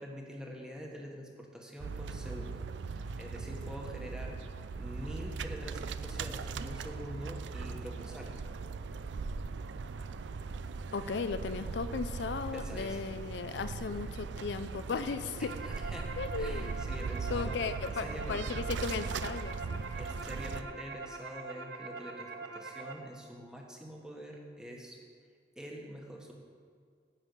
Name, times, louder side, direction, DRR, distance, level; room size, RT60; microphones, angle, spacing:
voice 1, 0.0-4.4 4.8-8.4 12.5-13.1 15.4-17.7 18.0-18.6 20.0-25.0 25.6-26.3, equal, 5° right, -1 dB, 1.2 m, -45 dB
sound 1, 1.8-20.6, right 4 dB, 75° right, 0.4 m, -39 dB
voice 2, 10.9-15.6 16.2-16.8 17.3-19.9, left 4 dB, 65° left, 11 dB, 0.4 m, -36 dB
sound 2, 15.2-22.9, right 4 dB, 60° right, 0.8 m, -44 dB
10.0 x 5.5 x 8.1 m, 2.1 s
head